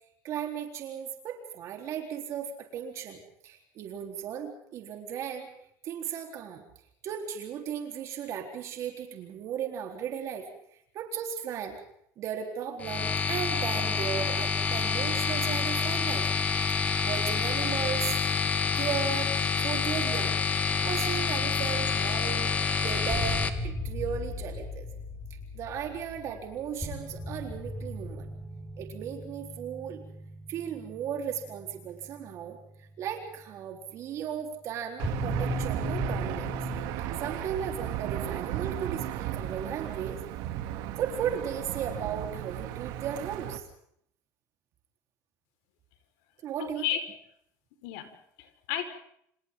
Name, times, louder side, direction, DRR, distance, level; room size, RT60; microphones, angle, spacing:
voice 1, 0.2-5.5 5.8-6.6 7.0-10.5 10.9-11.8 12.2-16.3 17.0-18.2 18.8-19.3 19.6-24.9 25.5-28.3 28.8-30.0 30.5-36.5 37.2-40.2 41.0-43.6 46.4-46.8, right 8 dB, 45° right, 3 dB, 4.0 m, -36 dB
sound 1, 12.8-23.5, left 5 dB, 20° left, 2.0 m, -28 dB
sound 2, 22.9-33.1 35.0-40.1, left 1 dB, 5° left, 5.7 m, -38 dB
Aircraft / Engine, 35.0-43.6, right 12 dB, 75° right, 2.9 m, -35 dB
voice 2, 46.6-47.0 47.8-48.8, left 10 dB, 90° left, 8 dB, 4.8 m, -33 dB
29.5 x 28.5 x 3.9 m, 0.70 s
cardioid pair, 165°, 7 cm